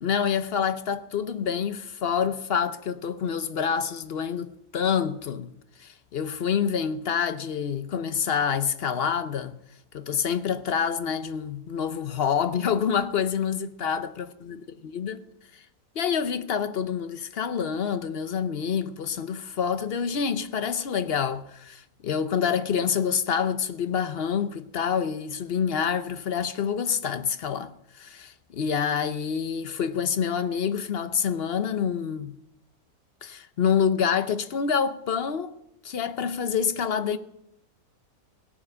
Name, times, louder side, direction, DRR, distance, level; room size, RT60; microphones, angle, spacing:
voice 1, 0.0-5.5 5.8-9.6 9.9-14.6 14.9-15.2 15.5-15.6 16.0-32.4 33.2-35.6 35.8-37.2, left 7 dB, 55° left, 0.7 m, -27 dB
17.5 x 6.1 x 9.7 m
omnidirectional pair, 1.8 m